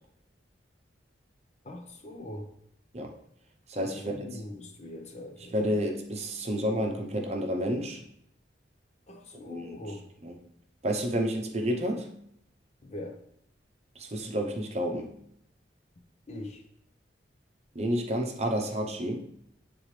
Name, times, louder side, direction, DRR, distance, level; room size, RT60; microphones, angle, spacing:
voice 1, 1.6-2.5 3.7-5.8 9.1-10.0 12.8-13.2 16.3-16.6, left 1 dB, 40° left, 3 dB, 0.8 m, -41 dB
voice 2, 3.7-4.3 5.5-8.0 9.4-9.7 10.2-10.3 10.8-12.1 14.0-15.1 17.7-19.3, equal, 35° right, 2 dB, 0.8 m, -30 dB
9.0 x 3.8 x 3.2 m, 0.72 s
head